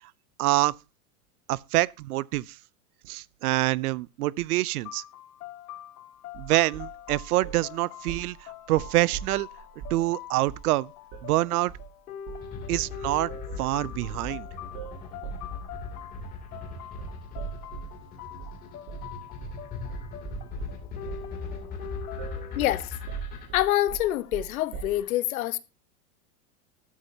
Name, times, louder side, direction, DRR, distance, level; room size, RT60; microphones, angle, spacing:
voice 1, 0.4-0.8 1.5-2.6 3.1-5.0 6.3-9.5 9.9-10.9 11.2-11.7 12.7-13.3 13.6-14.5, right 18 dB, 80° right, 0.6 m, -26 dB
sound 1, 4.8-22.6, left 10 dB, 85° left, 2.9 m, -44 dB
sound 2, 6.3-7.7 8.1-8.3 8.7-10.0 10.5-10.7 11.1-11.3 11.7-11.9 12.3-12.5 12.8-18.0 18.4-18.6 18.9-19.1 19.4-19.6 19.9-25.0, right 7 dB, 35° right, 6.1 m, -40 dB
sound 3, 12.4-23.5, left 6 dB, 20° left, 2.9 m, -39 dB
voice 2, 22.5-23.0 23.5-25.6, left 14 dB, 70° left, 1.1 m, -26 dB
13.0 x 12.5 x 2.8 m
supercardioid pair, 175°, 44 cm